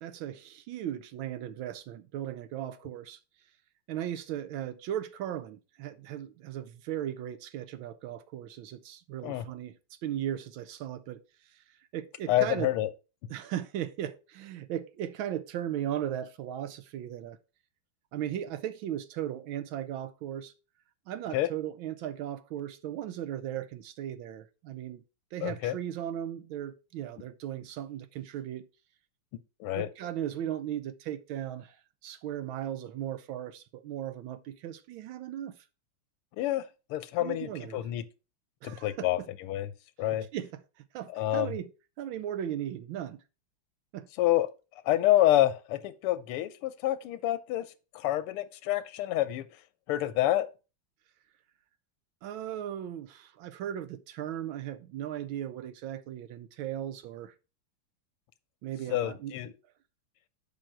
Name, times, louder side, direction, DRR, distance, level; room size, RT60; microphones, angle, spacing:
voice 1, 0.0-3.2 3.9-9.8 10.0-12.7 13.3-17.4 18.1-20.5 21.1-25.0 25.3-28.7 29.7-31.8 32.0-35.6 37.2-37.9 38.6-39.1 40.3-40.6 40.9-41.7 42.0-43.2 43.9-44.1 52.2-57.3 58.6-59.5, right 11 dB, 75° right, 1.3 m, -37 dB
voice 2, 12.3-12.9 21.3-21.5 25.4-25.7 29.6-29.9 36.4-38.0 38.6-39.7 40.0-40.3 41.1-41.5 44.2-44.5 44.8-47.7 47.9-49.5 49.9-50.5 58.9-59.5, left 14 dB, 85° left, 1.6 m, -28 dB
7.2 x 5.2 x 4.5 m
omnidirectional pair, 2.4 m